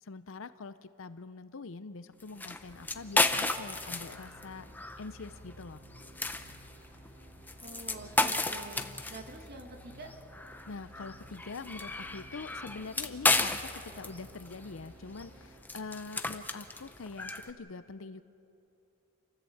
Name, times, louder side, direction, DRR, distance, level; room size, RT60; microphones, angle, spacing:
voice 1, 0.0-4.7 5.0-5.8 10.7-18.2, left 4 dB, 65° left, 13 dB, 0.6 m, -44 dB
sound 1, 2.2-17.5, left 2 dB, 10° left, 0.7 m, -34 dB
sound 2, 2.7-15.6, right 1 dB, 70° right, 3.4 m, -54 dB
voice 2, 7.6-10.1, right 2 dB, 50° right, 3 dB, 2.1 m, -47 dB
29.0 x 14.0 x 7.9 m, 2.9 s
head